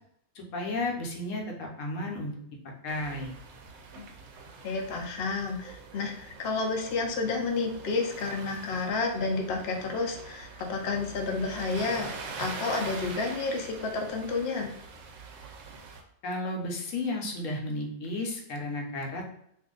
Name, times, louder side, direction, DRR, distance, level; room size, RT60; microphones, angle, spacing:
voice 1, 0.3-2.3 2.8-3.3 16.2-19.3, left 2 dB, 75° left, 1 dB, 1.1 m, -33 dB
sound 1, 2.9-16.0, right 4 dB, 65° right, 0.8 m, -44 dB
voice 2, 4.6-12.1 12.4-14.7, left 3 dB, 60° left, 2 dB, 0.8 m, -30 dB
2.5 x 2.5 x 3.7 m, 0.71 s
omnidirectional pair, 1.4 m